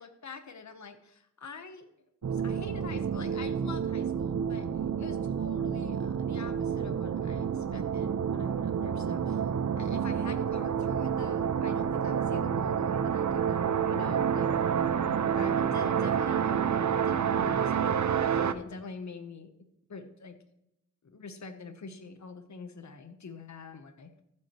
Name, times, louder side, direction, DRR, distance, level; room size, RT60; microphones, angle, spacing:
voice 1, 0.0-1.9 2.2-4.7 5.0-9.4 9.8-14.5 15.3-19.5 19.9-20.4 21.0-24.1, left 4 dB, 60° left, 8 dB, 1.0 m, -45 dB
sound 1, 2.2-18.5, right 7 dB, 65° right, 0.6 m, -29 dB
14.5 x 7.7 x 3.0 m, 0.82 s
wide cardioid pair, 85°, 32 cm